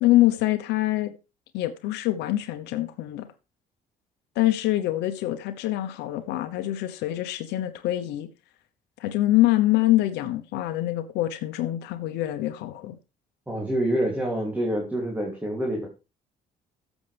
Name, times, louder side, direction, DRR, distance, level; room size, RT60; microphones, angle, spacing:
voice 1, 0.0-1.1 1.5-3.3 4.4-8.3 9.0-13.0, left 15 dB, 90° left, 0.9 m, -24 dB
voice 2, 13.5-15.9, right 1 dB, 10° right, 2.8 m, -27 dB
13.5 x 7.2 x 3.4 m
cardioid pair, 110°, 17 cm